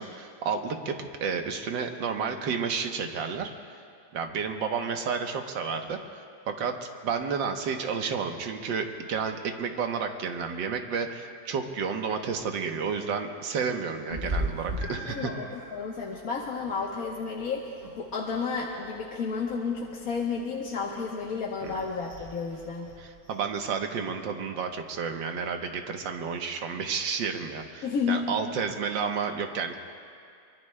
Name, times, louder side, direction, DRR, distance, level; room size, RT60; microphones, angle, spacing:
voice 1, 0.0-3.5 4.1-6.0 6.5-15.3 21.6-21.7 23.0-29.8, right 6 dB, 90° right, 5 dB, 1.7 m, -31 dB
Meow, 14.1-23.8, right 1 dB, 35° right, 5.4 m, -40 dB
voice 2, 15.1-17.7 18.0-22.9 27.8-28.4, left 5 dB, 55° left, -3 dB, 1.4 m, -31 dB
24.0 x 23.5 x 2.2 m, 2.3 s
omnidirectional pair, 1.9 m